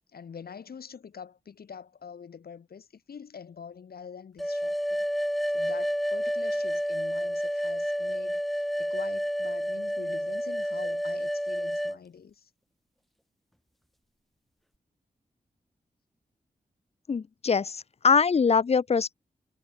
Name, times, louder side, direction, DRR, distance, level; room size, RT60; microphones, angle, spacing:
voice 1, 0.1-5.0 5.5-12.5, left 6 dB, 85° left, 6.7 m, -45 dB
sound 1, 4.4-12.0, equal, ahead, 1.7 m, -29 dB
voice 2, 17.1-19.1, left 5 dB, 45° left, 0.5 m, -23 dB
wide cardioid pair, 75°, 15 cm